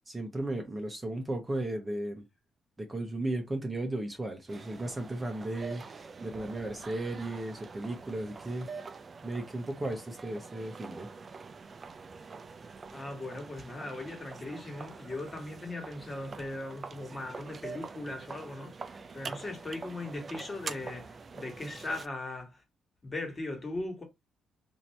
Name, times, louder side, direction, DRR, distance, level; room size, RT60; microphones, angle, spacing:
voice 1, 0.1-2.2 2.8-9.0 9.2-11.1 16.3-16.4, right 1 dB, 20° right, 0.9 m, -35 dB
sound 1, 4.5-22.1, right 4 dB, 40° right, 0.4 m, -45 dB
voice 2, 12.9-22.6 23.0-24.0, left 2 dB, 30° left, 1.7 m, -39 dB
2.9 x 2.7 x 4.4 m
cardioid pair, 90°, 0 cm